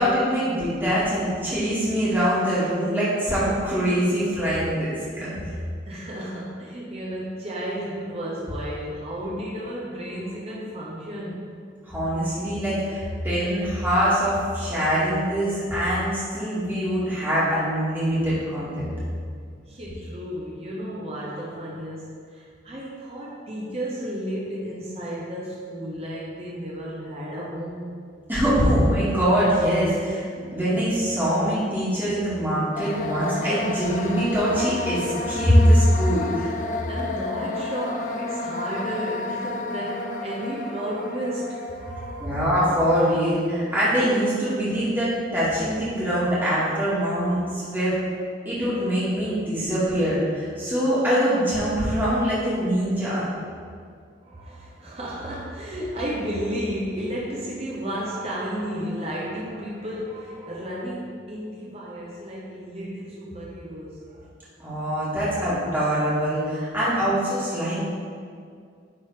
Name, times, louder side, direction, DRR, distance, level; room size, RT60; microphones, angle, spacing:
voice 1, 0.0-5.3 11.8-18.9 28.3-36.5 42.2-48.0 48.4-53.2 64.6-67.8, equal, 10° right, -11 dB, 2.2 m, -23 dB
voice 2, 5.9-11.6 19.7-27.9 36.9-42.3 54.2-64.2, equal, 30° right, -5 dB, 1.0 m, -33 dB
sound 1, 32.7-44.6, left 3 dB, 40° left, 0.5 m, -33 dB
10.0 x 4.0 x 5.0 m, 2.2 s
head